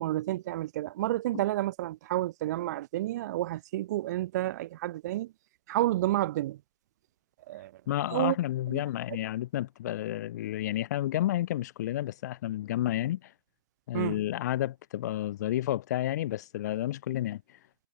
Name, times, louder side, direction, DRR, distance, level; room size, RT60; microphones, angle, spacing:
voice 1, 0.0-5.3 5.7-6.6 7.5-7.7 8.1-8.4 8.7-8.8 13.9-14.2, right 15 dB, 45° right, 1.1 m, -30 dB
voice 2, 7.9-13.3 13.9-17.6, left 13 dB, 45° left, 0.4 m, -31 dB
hypercardioid pair, 130°, 12 cm